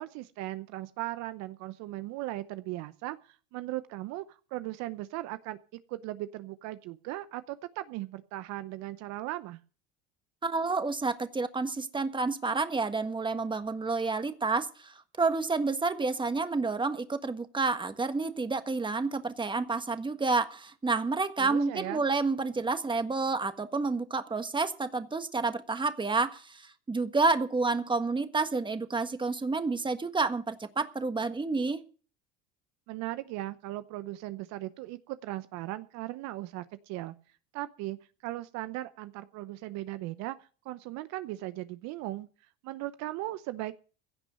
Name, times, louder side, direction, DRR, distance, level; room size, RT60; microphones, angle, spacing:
voice 1, 0.0-5.6 5.9-9.6 21.4-22.0 32.9-37.1 37.5-38.0 38.2-42.3 42.6-43.7, right 16 dB, 65° right, 13 dB, 0.8 m, -38 dB
voice 2, 10.4-31.8, right 3 dB, 15° right, 9 dB, 1.5 m, -29 dB
16.0 x 6.1 x 9.2 m, 0.39 s
hypercardioid pair, 80°, 30 cm